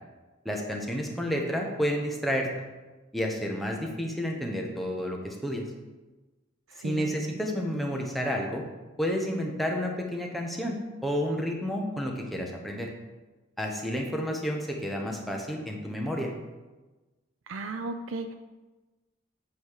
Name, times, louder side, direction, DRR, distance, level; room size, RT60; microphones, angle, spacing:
voice 1, 0.4-2.5 3.1-5.6 6.8-8.6 9.0-12.9 13.6-16.3, equal, ahead, 0 dB, 1.0 m, -30 dB
voice 2, 6.7-7.1 17.5-18.3, right 3 dB, 90° right, 8 dB, 0.5 m, -35 dB
7.9 x 5.1 x 4.8 m, 1.2 s
head